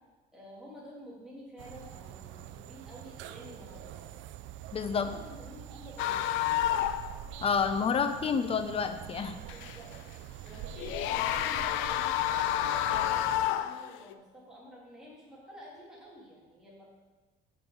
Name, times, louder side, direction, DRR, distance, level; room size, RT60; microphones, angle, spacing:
voice 1, 0.3-4.1 4.9-6.4 9.5-9.9 10.4-16.9, equal, 5° right, -6 dB, 2.8 m, -50 dB
sound 1, 1.6-13.5, right 11 dB, 70° right, 0.4 m, -45 dB
voice 2, 4.7-5.1 7.4-9.3, left 6 dB, 30° left, 9 dB, 0.6 m, -29 dB
sound 2, 6.0-7.2 7.4-7.5 9.5-9.9 10.7-14.1, left 12 dB, 75° left, 0.5 m, -29 dB
6.8 x 6.0 x 5.1 m, 1.2 s
cardioid pair, 125°, 20 cm